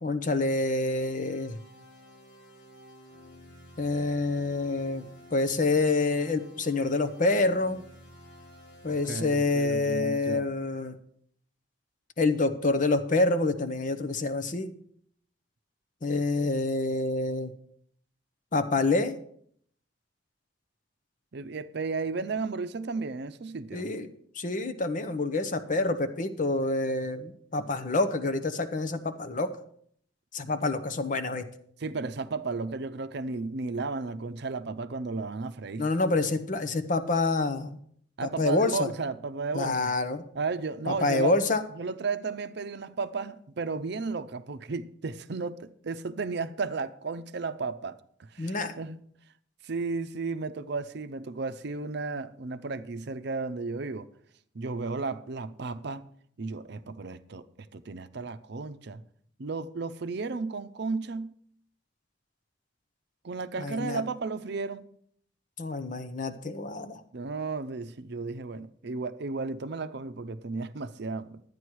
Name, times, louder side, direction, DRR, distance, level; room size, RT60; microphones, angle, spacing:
voice 1, 0.0-1.6 3.8-5.0 5.3-7.8 8.8-11.0 12.2-14.7 16.0-17.5 18.5-19.2 23.7-29.5 30.3-31.4 35.8-37.8 38.2-38.9 39.5-40.2 40.9-41.6 48.4-48.8 63.6-64.0 65.6-67.0, left 2 dB, 45° left, 0.8 m, -27 dB
sound 1, 0.9-9.6, equal, 80° left, 4.9 m, -52 dB
voice 2, 8.9-10.5 21.3-23.9 31.8-35.9 38.2-39.9 40.3-41.3 41.7-49.0 49.6-54.1 54.5-56.1 56.4-57.4 57.7-59.0 59.4-61.3 63.2-64.9 67.1-71.4, right 4 dB, 65° right, 0.6 m, -34 dB
11.5 x 9.2 x 4.6 m
head